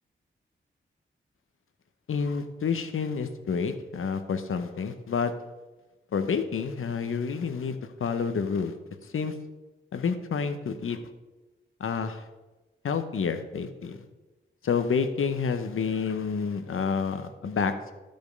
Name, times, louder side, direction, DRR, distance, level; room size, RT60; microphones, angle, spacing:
voice 1, 2.1-5.3 6.1-8.7 9.1-9.3 9.9-11.0 11.8-12.2 12.8-14.0 14.6-17.9, left 5 dB, 75° left, 9 dB, 0.9 m, -29 dB
12.0 x 5.2 x 5.3 m, 1.1 s
cardioid pair, 45°, 21 cm